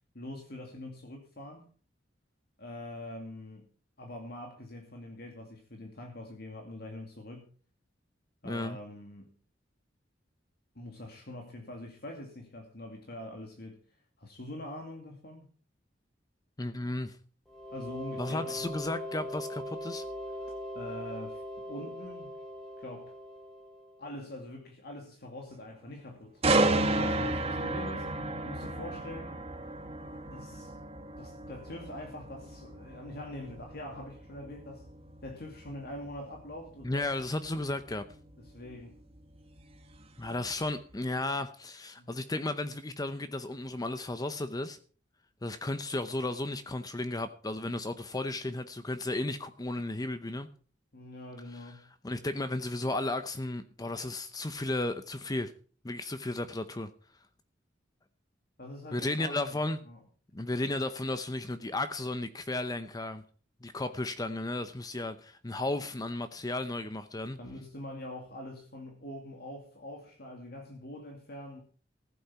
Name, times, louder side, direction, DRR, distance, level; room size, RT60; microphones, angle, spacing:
voice 1, 0.1-1.7 2.6-3.7 4.0-7.5 8.4-9.3 10.7-13.8 14.2-15.5 17.7-18.8 20.5-22.3 22.8-23.1 24.0-29.4 30.3-30.7 31.2-34.9 35.2-37.1 38.4-39.0 42.0-42.1 50.9-51.9 58.6-59.6 59.9-60.0 67.4-71.6, left 1 dB, 55° left, 2.4 m, -44 dB
voice 2, 8.4-8.8 16.6-17.2 18.2-20.0 36.8-38.0 40.2-44.8 45.4-50.5 51.5-51.7 52.0-55.5 55.8-56.9 58.9-59.8 60.3-63.2 63.6-67.4, left 2 dB, 20° left, 0.7 m, -34 dB
sound 1, 17.5-24.1, equal, ahead, 3.6 m, -41 dB
sound 2, 26.4-40.3 40.7-40.9, right 2 dB, 30° right, 1.5 m, -33 dB
15.5 x 8.5 x 5.7 m
head